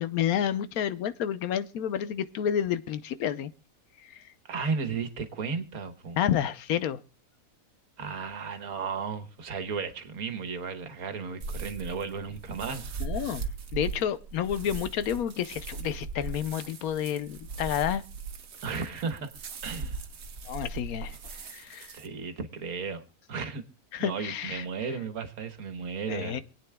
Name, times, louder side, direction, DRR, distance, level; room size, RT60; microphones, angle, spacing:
voice 1, 0.0-3.5 4.1-4.2 6.2-7.0 13.0-13.5 13.7-18.0 20.5-21.2 21.5-21.9 23.9-24.6 26.1-26.4, left 9 dB, 80° left, 1.2 m, -30 dB
voice 2, 4.4-6.2 8.0-12.9 18.6-19.3 19.6-20.0 21.9-23.0 23.3-23.6 24.0-26.4, right 5 dB, 85° right, 1.7 m, -34 dB
sound 1, 11.4-22.1, right 4 dB, 70° right, 1.5 m, -39 dB
27.0 x 9.0 x 2.2 m
omnidirectional pair, 1.5 m